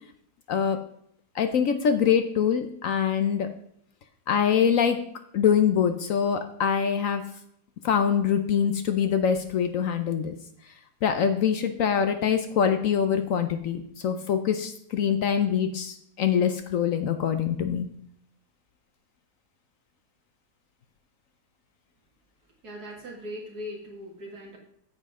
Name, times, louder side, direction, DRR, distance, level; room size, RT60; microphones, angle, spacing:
voice 1, 0.5-0.8 1.3-3.5 4.3-5.0 5.3-7.2 7.8-10.4 11.0-17.9, left 7 dB, 65° left, 8 dB, 0.9 m, -24 dB
voice 2, 22.6-24.6, equal, 70° right, -1 dB, 2.7 m, -39 dB
9.1 x 7.7 x 3.7 m, 0.69 s
omnidirectional pair, 1.7 m